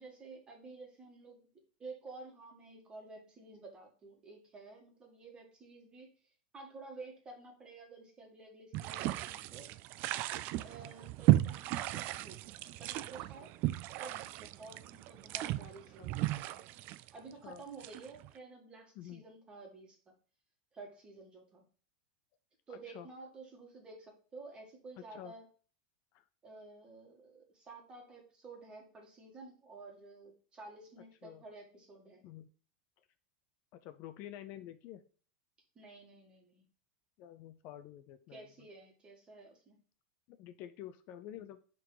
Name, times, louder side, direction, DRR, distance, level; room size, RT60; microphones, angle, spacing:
voice 1, 0.0-1.4 1.8-9.7 10.6-12.4 12.7-13.6 14.0-16.7 17.1-20.1 20.7-21.6 22.7-25.5 26.4-32.2 35.8-36.6 38.3-39.8, right 3 dB, 20° right, 1 dB, 1.9 m, -52 dB
sound 1, 8.7-18.3, right 16 dB, 40° right, 0.3 m, -34 dB
voice 2, 22.7-23.1 25.1-25.3 26.1-26.2 31.2-31.4 32.2-32.5 33.7-35.0 37.2-38.4 40.3-41.7, left 11 dB, 45° left, 10 dB, 0.5 m, -49 dB
5.7 x 3.8 x 4.7 m, 0.41 s
supercardioid pair, 145°, 5 cm